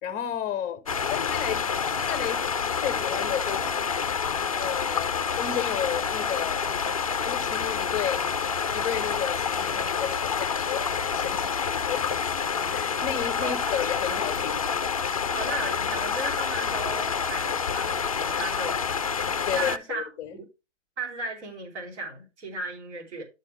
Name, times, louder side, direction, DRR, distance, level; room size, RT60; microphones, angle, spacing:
voice 1, 0.0-0.8 1.1-1.6 2.0-2.4 2.8-4.0 4.6-6.8 7.2-8.2 8.7-10.9 11.1-12.2 12.7-14.7 19.5-20.4, left 9 dB, 10° left, 0.8 m, -32 dB
sound 1, 0.9-19.8, left 6 dB, 30° left, 0.4 m, -28 dB
voice 2, 13.4-13.8 15.3-20.4 21.0-23.2, right 3 dB, 65° right, 4.7 m, -36 dB
11.5 x 4.2 x 5.7 m
hypercardioid pair, 165°, 37 cm